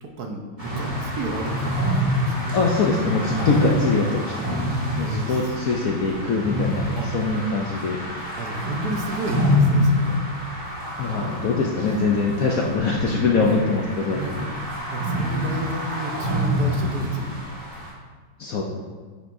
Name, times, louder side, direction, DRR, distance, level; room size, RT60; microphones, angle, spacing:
voice 1, 0.0-2.3 4.5-5.7 7.0-7.1 8.4-10.2 13.4-13.7 14.1-14.5 14.8-17.3, right 2 dB, 65° right, 3 dB, 1.1 m, -32 dB
sound 1, 0.6-17.9, left 1 dB, 20° right, 1.9 m, -26 dB
voice 2, 2.5-4.3 4.9-6.9 7.1-8.0 11.0-14.2 18.4-18.6, left 4 dB, 70° left, -1 dB, 0.8 m, -23 dB
9.3 x 5.8 x 2.6 m, 1.5 s
omnidirectional pair, 2.2 m